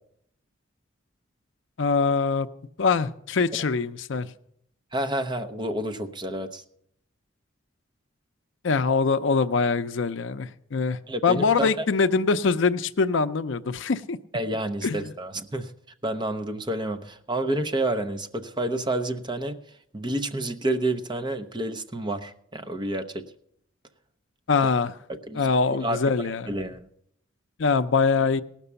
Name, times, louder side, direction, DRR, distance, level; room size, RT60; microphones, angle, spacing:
voice 1, 1.8-2.5 2.8-4.3 8.6-14.2 14.8-15.1 24.5-24.9 25.3-26.5 27.6-28.4, left 4 dB, 65° left, 12 dB, 0.5 m, -23 dB
voice 2, 4.9-6.6 11.1-11.7 14.3-15.7 16.0-19.6 19.9-23.2 25.3-25.4 25.8-26.0 26.5-26.9, right 1 dB, 20° right, 7 dB, 0.7 m, -29 dB
18.0 x 6.0 x 6.8 m, 0.70 s
head